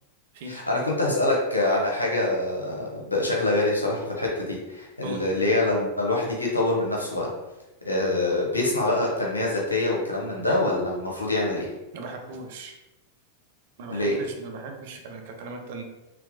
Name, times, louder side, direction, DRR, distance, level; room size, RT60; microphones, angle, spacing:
voice 1, 0.5-7.3 7.8-11.7 13.9-14.2, left 2 dB, 80° left, -2 dB, 0.9 m, -25 dB
voice 2, 11.9-12.8 13.8-15.8, right 3 dB, 50° right, 3 dB, 0.6 m, -38 dB
3.4 x 2.9 x 2.7 m, 0.99 s
figure-of-eight pair, 90°, 0 cm